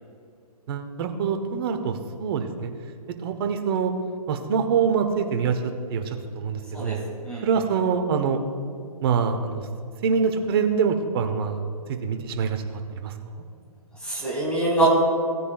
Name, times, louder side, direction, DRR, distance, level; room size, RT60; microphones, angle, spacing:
voice 1, 0.7-2.7 3.2-3.9 4.3-6.0 6.4-7.0 7.4-8.4 9.0-9.6 10.0-11.6 12.0-13.1, right 6 dB, 40° right, 6 dB, 1.0 m, -25 dB
voice 2, 14.0-14.9, right 2 dB, 5° left, -5 dB, 2.1 m, -24 dB
17.0 x 9.7 x 2.4 m, 2.3 s
hypercardioid pair, 140°, 20 cm